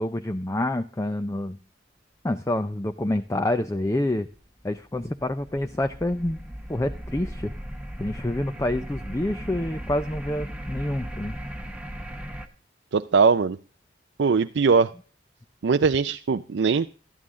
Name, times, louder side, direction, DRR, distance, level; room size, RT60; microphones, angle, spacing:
voice 1, 0.0-1.6 2.2-4.3 4.6-6.4 6.7-7.5 8.0-11.4, left 1 dB, 15° left, 9 dB, 0.5 m, -27 dB
sound 1, 4.3-12.5, equal, 5° right, 1.1 m, -37 dB
voice 2, 12.9-13.6 14.2-14.9 15.6-16.9, right 5 dB, 75° right, 9 dB, 0.4 m, -20 dB
13.0 x 10.5 x 3.7 m, 0.38 s
head